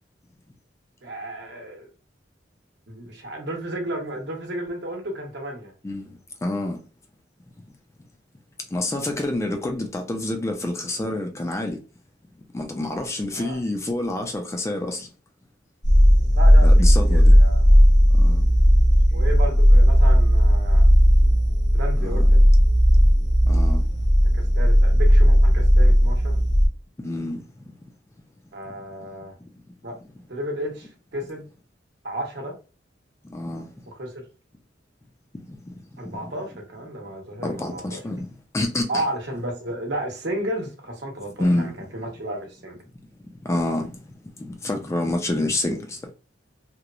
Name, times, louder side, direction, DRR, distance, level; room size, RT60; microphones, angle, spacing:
voice 1, 1.0-1.9 2.9-5.7 13.3-13.6 16.3-17.9 19.1-20.9 21.7-22.4 24.3-26.4 28.5-29.3 29.8-29.9 30.3-31.4 32.0-32.5 33.9-34.2 36.0-38.0 38.9-42.8, right 1 dB, 65° right, 0.9 m, -33 dB
voice 2, 5.8-6.8 8.7-11.8 12.5-15.1 16.6-17.3 18.1-18.5 22.0-22.2 23.5-23.9 27.0-27.4 33.2-33.7 35.5-35.8 36.2-36.3 37.4-38.3 38.5-39.0 41.4-41.7 43.3-46.1, left 1 dB, 15° left, 0.3 m, -28 dB
sound 1, 15.8-26.7, equal, 60° left, 1.0 m, -15 dB
2.9 x 2.0 x 2.4 m
head